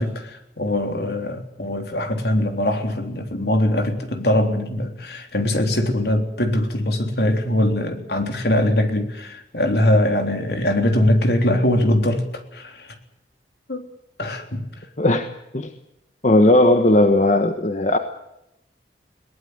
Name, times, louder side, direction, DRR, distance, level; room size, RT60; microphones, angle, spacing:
voice 1, 0.0-12.2 12.5-13.0 13.7-13.8 14.2-14.6, left 1 dB, 65° left, 5 dB, 3.6 m, -21 dB
voice 2, 15.0-15.3 15.5-15.7 16.2-18.0, left 1 dB, 40° left, 6 dB, 1.4 m, -16 dB
22.0 x 19.0 x 8.1 m, 0.86 s
head